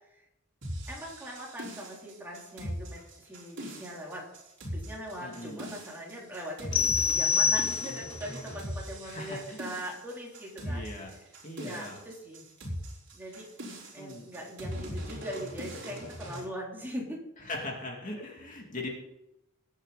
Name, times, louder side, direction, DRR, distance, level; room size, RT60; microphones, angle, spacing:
sound 1, 0.6-16.4, equal, 60° right, 4.4 m, -40 dB
voice 1, 0.9-4.3 4.7-6.9 7.1-10.8 11.6-12.4 13.1-13.5 13.9-17.2, equal, 10° right, -3 dB, 3.5 m, -41 dB
voice 2, 5.2-5.6 9.0-9.6 10.6-11.1 11.4-12.0 13.9-14.2 17.5-18.9, left 2 dB, 35° left, -1 dB, 2.6 m, -39 dB
sound 2, 6.7-8.3, left 6 dB, 70° left, 0.8 m, -26 dB
21.0 x 8.9 x 4.2 m, 0.90 s
head